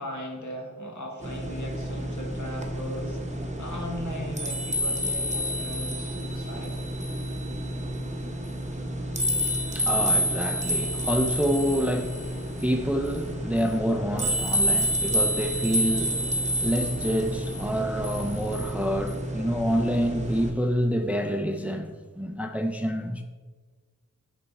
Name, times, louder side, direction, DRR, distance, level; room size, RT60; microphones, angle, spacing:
voice 1, 0.0-6.8, equal, 65° left, 1.4 m, -38 dB
sound 1, 1.2-20.5, equal, 25° right, 0.8 m, -29 dB
voice 2, 9.7-23.2, equal, 5° right, 0.5 m, -27 dB
8.6 x 3.4 x 4.1 m
wide cardioid pair, 60°, 31 cm